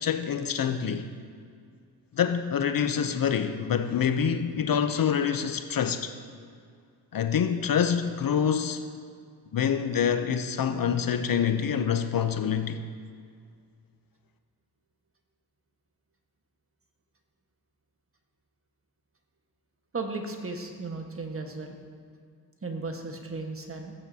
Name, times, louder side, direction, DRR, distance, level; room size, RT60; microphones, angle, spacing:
voice 1, 0.0-1.1 2.1-6.1 7.1-8.8 9.5-12.8, left 7 dB, 50° left, 8 dB, 0.7 m, -26 dB
voice 2, 19.9-21.8 22.6-23.9, right 3 dB, 30° right, 3 dB, 1.4 m, -35 dB
15.5 x 8.5 x 2.8 m, 2.2 s
supercardioid pair, 60°, 44 cm